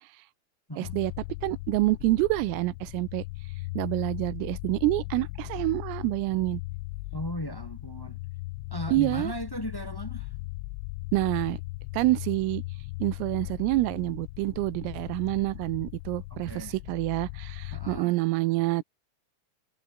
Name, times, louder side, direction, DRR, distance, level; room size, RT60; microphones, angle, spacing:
sound 1, 0.8-18.0, left 20 dB, 90° left, 3.4 m, -38 dB
voice 1, 0.8-1.1 1.4-3.2 3.8-6.6 8.9-9.3 11.1-11.6 11.9-12.6 13.0-18.8, right 19 dB, 85° right, 3.5 m, -27 dB
voice 2, 7.1-8.2 8.7-10.3 16.3-16.7 17.7-18.1, equal, 10° left, 1.3 m, -37 dB
omnidirectional pair, 5.9 m